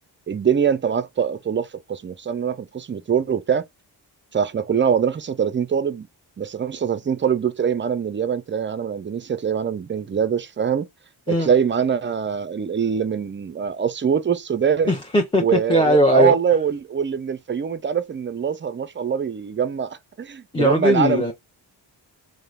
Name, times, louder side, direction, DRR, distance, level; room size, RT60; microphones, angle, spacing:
voice 1, 0.3-3.6 4.3-6.1 6.4-10.9 11.3-15.0 15.4-21.3, right 7 dB, 25° right, 0.4 m, -23 dB
voice 2, 14.9-15.4 15.7-16.4 20.5-21.3, equal, 10° left, 0.7 m, -18 dB
3.0 x 2.1 x 2.4 m
supercardioid pair, 45°, 49 cm